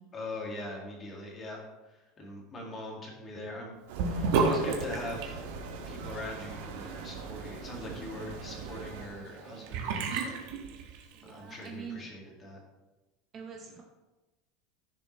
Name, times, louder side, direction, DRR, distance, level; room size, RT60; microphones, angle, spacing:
voice 1, 0.1-1.6 2.2-3.8 4.1-5.5 5.9-10.4 11.2-12.6, left 1 dB, 20° left, -1 dB, 2.1 m, -41 dB
sound 1, 3.9-9.1, right 4 dB, 75° right, 2.1 m, -42 dB
Sink (filling or washing) / Bathtub (filling or washing), 4.0-11.3, right 4 dB, 55° right, 1.5 m, -34 dB
voice 2, 11.2-12.1 13.3-13.8, right 6 dB, 20° right, 2 dB, 0.7 m, -43 dB
15.5 x 6.8 x 3.2 m, 1.1 s
supercardioid pair, 180°, 0 cm